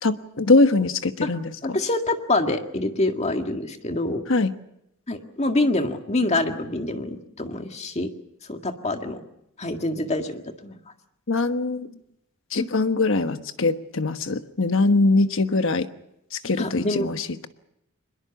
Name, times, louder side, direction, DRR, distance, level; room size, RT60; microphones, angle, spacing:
voice 1, 0.0-1.8 4.3-4.5 11.3-11.9 12.5-15.9 16.3-17.3, left 3 dB, 65° left, 9 dB, 1.3 m, -22 dB
voice 2, 1.6-4.2 5.1-8.1 8.5-9.2 9.6-10.8 12.6-12.7 16.6-17.1, left 2 dB, 30° left, 5 dB, 1.8 m, -26 dB
23.5 x 21.5 x 7.1 m, 0.80 s
head